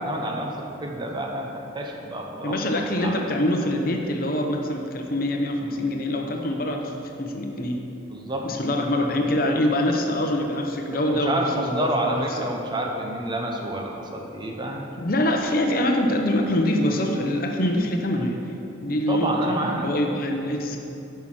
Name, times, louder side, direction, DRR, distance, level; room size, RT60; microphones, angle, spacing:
voice 1, 0.0-1.5 1.7-2.6 2.9-3.3 8.1-8.5 10.9-14.9 19.1-19.9, right 1 dB, 25° right, 1 dB, 0.8 m, -28 dB
voice 2, 2.4-7.9 8.4-12.2 15.0-18.4 18.8-20.8, left 1 dB, 45° left, 3 dB, 0.8 m, -24 dB
9.2 x 5.7 x 6.1 m, 2.9 s
head